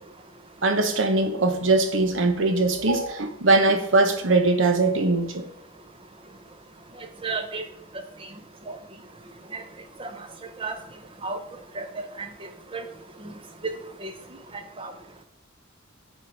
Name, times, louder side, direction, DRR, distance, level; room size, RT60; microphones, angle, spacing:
voice 1, 0.6-5.5, right 2 dB, 65° right, 1.0 m, -21 dB
voice 2, 7.2-7.6 8.7-8.8 9.5-9.6 10.0-10.3 10.6-10.8 11.2-11.4 11.7-12.8 13.2-13.3 13.6-13.7 14.0-14.1 14.8-14.9, right 3 dB, 25° right, 0.8 m, -33 dB
9.0 x 4.5 x 4.7 m
head